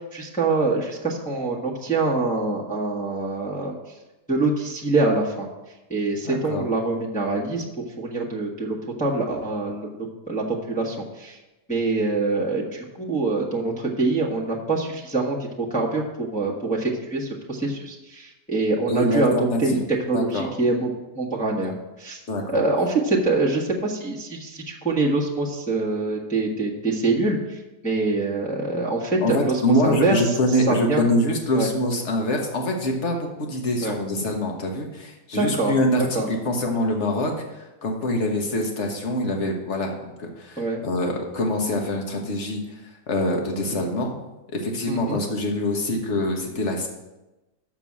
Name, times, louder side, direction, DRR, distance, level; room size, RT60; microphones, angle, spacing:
voice 1, 0.1-3.8 4.3-5.5 5.9-7.6 8.0-11.4 11.7-19.8 20.1-21.7 22.0-22.2 22.5-27.6 27.8-30.2 30.7-31.0 31.5-31.7 33.8-33.9 35.4-35.7 36.1-36.3 40.6-40.8 44.9-45.2, right 3 dB, 5° left, -4 dB, 1.2 m, -25 dB
voice 2, 6.2-6.6 18.9-19.8 20.1-20.5 22.3-22.6 29.2-42.8 43.1-44.1 44.5-46.9, left 1 dB, 45° left, 2 dB, 1.6 m, -25 dB
6.9 x 6.0 x 7.5 m, 1.0 s
omnidirectional pair, 1.8 m